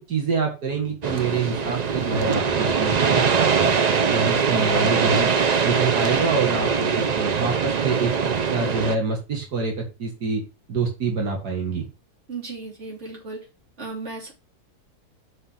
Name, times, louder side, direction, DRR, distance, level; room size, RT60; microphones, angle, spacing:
voice 1, 0.1-3.3 4.1-5.3 5.6-8.1 8.5-10.4 10.7-11.8, right 4 dB, 90° right, 1 dB, 2.4 m, -26 dB
sound 1, 1.0-9.0, right 6 dB, 70° right, 0.3 m, -22 dB
voice 2, 12.3-13.5 13.8-14.3, right 3 dB, 45° right, -2 dB, 3.4 m, -35 dB
6.2 x 5.4 x 5.7 m, 0.29 s
omnidirectional pair, 1.7 m